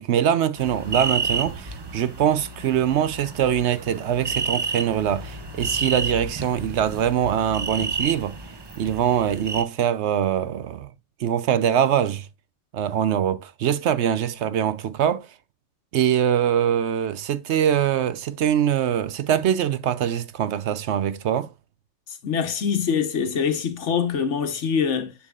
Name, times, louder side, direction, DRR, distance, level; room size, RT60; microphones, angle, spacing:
voice 1, 0.0-8.4 8.8-10.9 11.2-12.3 12.7-15.3 15.9-21.5, right 9 dB, 70° right, 0.8 m, -23 dB
sound 1, 0.6-9.6, right 3 dB, 25° right, 0.6 m, -31 dB
voice 2, 22.2-25.1, left 6 dB, 70° left, 1.3 m, -24 dB
7.1 x 6.9 x 2.4 m
omnidirectional pair, 1.3 m